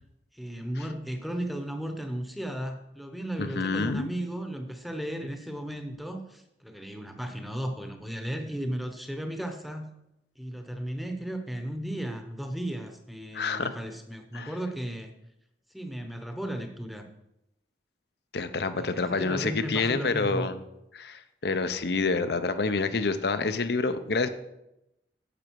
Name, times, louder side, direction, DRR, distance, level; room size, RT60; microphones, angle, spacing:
voice 1, 0.3-9.9 10.4-15.1 15.7-17.1 18.8-20.5, right 1 dB, ahead, 5 dB, 0.9 m, -35 dB
voice 2, 3.4-4.1 13.3-13.8 14.3-14.5 18.3-20.6 20.9-24.3, left 4 dB, 65° left, 11 dB, 0.7 m, -28 dB
10.0 x 7.6 x 4.6 m, 0.86 s
head